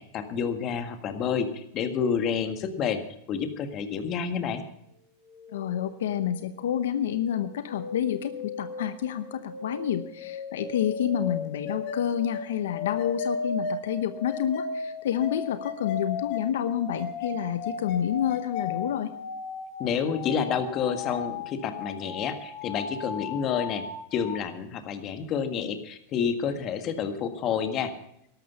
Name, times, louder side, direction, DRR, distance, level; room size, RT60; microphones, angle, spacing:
voice 1, 0.0-3.0 3.3-4.6 19.8-23.8 24.1-27.9, left 7 dB, 35° left, 8 dB, 1.7 m, -29 dB
sound 1, 5.2-24.4, left 4 dB, 55° left, 4.2 m, -36 dB
voice 2, 5.5-19.1, left 10 dB, 80° left, 11 dB, 0.9 m, -29 dB
13.0 x 12.0 x 5.6 m, 0.78 s
supercardioid pair, 135°, 0 cm